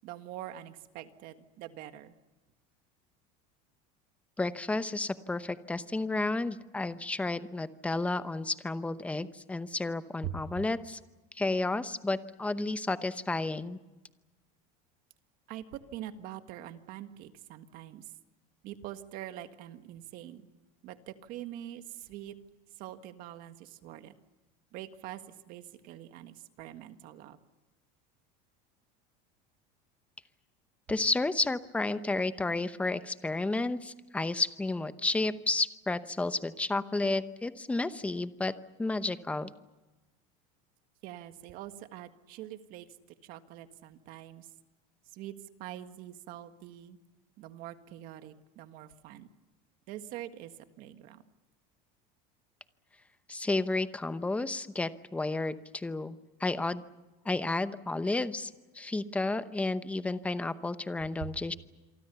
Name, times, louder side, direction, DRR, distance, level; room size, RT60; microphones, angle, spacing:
voice 1, 0.0-2.1 10.2-10.4 15.5-18.1 18.6-20.5 20.8-22.3 22.8-24.1 24.7-25.2 25.5-27.4 41.0-42.9 43.2-44.5 45.1-47.0 47.4-49.3 49.9-51.2 61.2-61.3, right 12 dB, 50° right, 9 dB, 1.7 m, -44 dB
voice 2, 4.4-11.0 11.3-13.8 30.9-38.5 38.8-39.5 53.3-56.8 57.2-61.5, left 2 dB, 5° left, 12 dB, 0.8 m, -32 dB
27.5 x 24.0 x 6.9 m, 1.1 s
cardioid pair, 155°, 19 cm